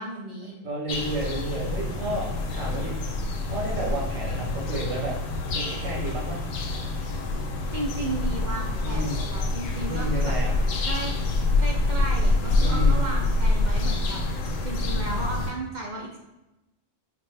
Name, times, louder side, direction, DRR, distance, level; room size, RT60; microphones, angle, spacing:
voice 1, 0.0-0.5 7.7-10.3 10.8-11.1 11.6-14.2 14.6-16.2, right 2 dB, 55° right, -1 dB, 0.5 m, -34 dB
voice 2, 0.6-3.0 3.5-5.1 5.5-6.4 8.8-9.2 9.8-10.5 12.6-13.0, right 1 dB, 85° right, -3 dB, 1.4 m, -31 dB
sound 1, 0.9-15.5, left 2 dB, 80° left, 1.0 m, -26 dB
4.1 x 2.2 x 3.2 m, 0.99 s
omnidirectional pair, 1.3 m